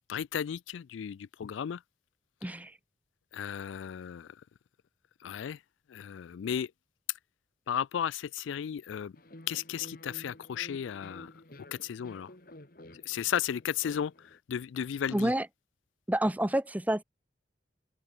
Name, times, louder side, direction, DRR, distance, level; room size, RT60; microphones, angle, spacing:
voice 1, 0.1-1.8 3.3-4.3 5.2-5.6 5.9-6.7 7.7-9.1 9.5-11.3 11.8-12.3 13.1-14.1 14.5-15.3, left 8 dB, 80° left, 0.3 m, -34 dB
voice 2, 2.4-2.7 15.1-15.5 16.1-17.0, right 1 dB, 10° right, 0.7 m, -28 dB
sound 1, 9.2-14.4, left 1 dB, 50° left, 2.3 m, -51 dB
open air
head